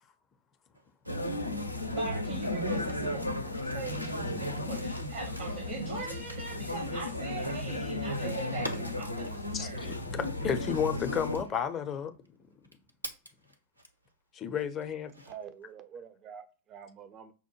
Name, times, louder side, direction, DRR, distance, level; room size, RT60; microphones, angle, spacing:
sound 1, 0.7-14.1 14.6-15.6, right 1 dB, 85° right, 0.5 m, -49 dB
sound 2, 1.1-11.4, left 1 dB, 85° left, 0.4 m, -34 dB
voice 1, 1.8-3.2 3.6-9.9, right 4 dB, 55° right, 0.9 m, -41 dB
voice 2, 9.5-12.1 14.3-15.1, left 7 dB, 25° left, 0.5 m, -32 dB
voice 3, 15.2-17.3, right 7 dB, 30° right, 0.5 m, -46 dB
5.6 x 2.1 x 2.9 m
figure-of-eight pair, 90°, 0 cm